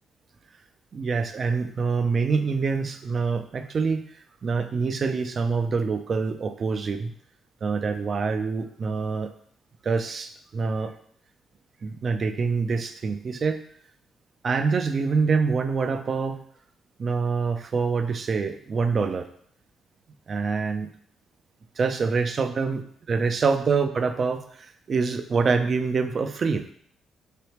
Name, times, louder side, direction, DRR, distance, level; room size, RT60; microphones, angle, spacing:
voice 1, 0.9-4.0 4.4-7.1 7.6-9.3 9.8-10.9 11.8-13.6 14.4-16.4 17.0-19.3 20.3-20.9 21.8-22.8 23.1-26.7, right 4 dB, 45° right, 8 dB, 0.4 m, -25 dB
3.3 x 3.2 x 2.9 m, 0.63 s
cardioid pair, 90°, 0 cm